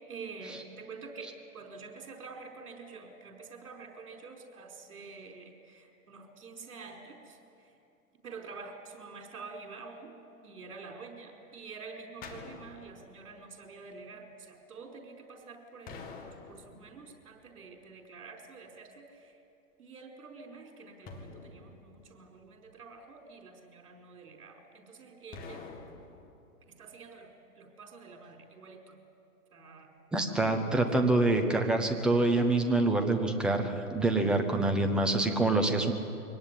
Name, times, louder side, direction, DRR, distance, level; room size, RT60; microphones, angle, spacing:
voice 1, 0.0-7.7 8.2-10.1 10.4-19.4 19.8-25.7 26.6-27.3 27.6-29.0 29.5-30.0 30.2-30.7, right 4 dB, 65° right, 2 dB, 5.1 m, -48 dB
sound 1, 12.2-13.4 15.9-17.2 21.1-22.5 25.3-26.3, left 4 dB, 20° left, 2.0 m, -47 dB
voice 2, 30.1-35.9, right 2 dB, ahead, 4 dB, 0.6 m, -26 dB
24.0 x 18.0 x 9.8 m, 2.7 s
hypercardioid pair, 140°, 46 cm